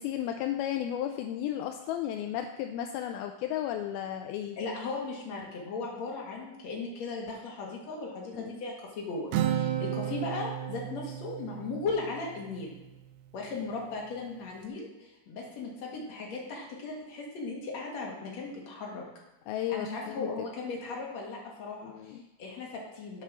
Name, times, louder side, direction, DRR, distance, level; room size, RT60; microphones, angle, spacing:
voice 1, 0.0-4.6 8.4-8.6 19.5-20.3 21.8-22.2, left 11 dB, 80° left, 5 dB, 2.3 m, -34 dB
voice 2, 4.6-12.8 13.3-19.0 19.7-23.2, left 3 dB, 50° left, -2 dB, 2.5 m, -37 dB
Acoustic guitar, 9.3-13.0, right 11 dB, 85° right, 2.7 m, -33 dB
8.1 x 7.1 x 6.2 m, 1.0 s
omnidirectional pair, 4.7 m